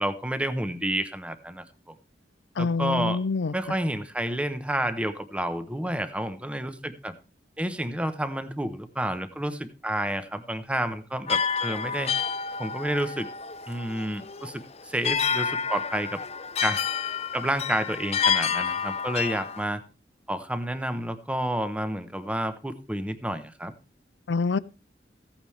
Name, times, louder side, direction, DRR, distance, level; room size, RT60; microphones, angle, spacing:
voice 1, 0.0-1.9 2.6-3.2 3.5-7.1 7.6-12.1 12.6-13.3 13.7-16.2 16.6-16.8 17.3-19.8 20.3-23.7, right 1 dB, 5° right, 0.8 m, -30 dB
voice 2, 2.6-3.8 24.3-24.6, left 4 dB, 80° left, 0.5 m, -26 dB
sound 1, 11.3-19.6, left 6 dB, 35° left, 0.6 m, -29 dB
15.0 x 8.8 x 3.2 m
head